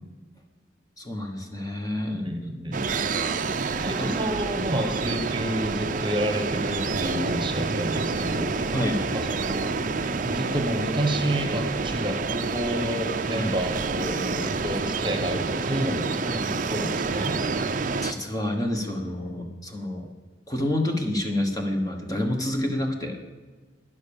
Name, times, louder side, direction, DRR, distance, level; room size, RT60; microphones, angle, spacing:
voice 1, 1.0-2.3 4.0-4.1 8.7-9.0 13.4-13.5 16.3-16.7 17.6-17.7 18.0-20.1 20.5-23.2, left 1 dB, 20° left, 3 dB, 1.2 m, -28 dB
voice 2, 2.1-2.9 3.8-8.5 9.3-9.7 10.2-16.1 16.4-17.4, equal, 25° right, 6 dB, 1.2 m, -29 dB
sound 1, 2.7-18.1, right 4 dB, 40° right, 0.6 m, -28 dB
11.5 x 10.5 x 7.1 m, 1.3 s
head